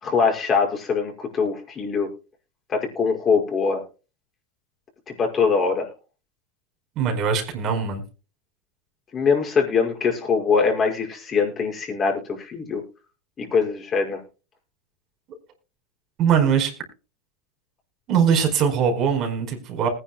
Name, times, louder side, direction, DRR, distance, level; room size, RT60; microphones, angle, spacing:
voice 1, 0.0-2.1 2.7-3.8 5.1-5.9 9.1-12.8 13.4-14.2, left 5 dB, 30° left, 1 dB, 5.8 m, -22 dB
voice 2, 7.0-8.0 16.2-16.7 18.1-19.9, right 7 dB, 45° right, 4 dB, 4.7 m, -21 dB
20.0 x 10.0 x 2.3 m, 0.32 s
hypercardioid pair, 105°, 0 cm